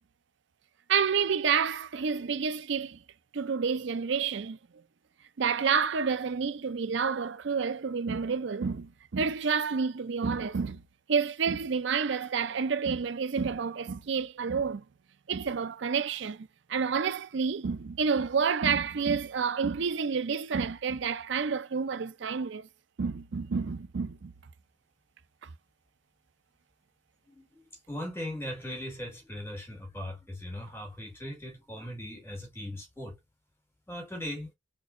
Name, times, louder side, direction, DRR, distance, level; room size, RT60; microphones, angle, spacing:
voice 1, 0.9-3.0 3.3-4.6 5.4-10.8 11.1-14.8 15.3-22.7 23.0-24.3, right 6 dB, 60° right, 0.5 m, -29 dB
voice 2, 27.3-27.6 27.9-33.2 33.9-34.5, left 1 dB, 10° left, 1.7 m, -39 dB
4.2 x 3.0 x 2.5 m
head